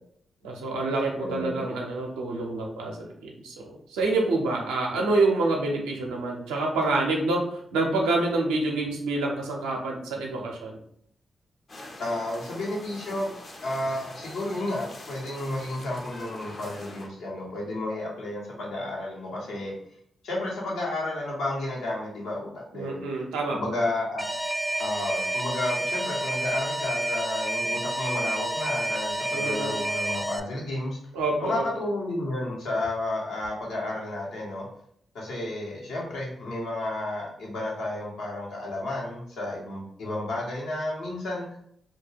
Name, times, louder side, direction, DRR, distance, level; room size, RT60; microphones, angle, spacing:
voice 1, 0.4-7.4 7.7-10.8 22.7-23.6 29.3-29.8 31.1-31.6, right 2 dB, 90° right, 0 dB, 0.5 m, -27 dB
voice 2, 1.2-1.6 12.0-13.3 13.6-19.7 20.2-23.0 23.5-24.2 24.8-31.0 31.4-34.7 35.1-41.5, left 1 dB, 80° left, -3 dB, 0.8 m, -32 dB
sound 1, 11.7-17.1, left 2 dB, 50° left, 0.6 m, -44 dB
Alarm, 24.2-30.4, right 1 dB, 10° right, 0.3 m, -29 dB
2.2 x 2.1 x 3.2 m, 0.68 s
hypercardioid pair, 40°, 0 cm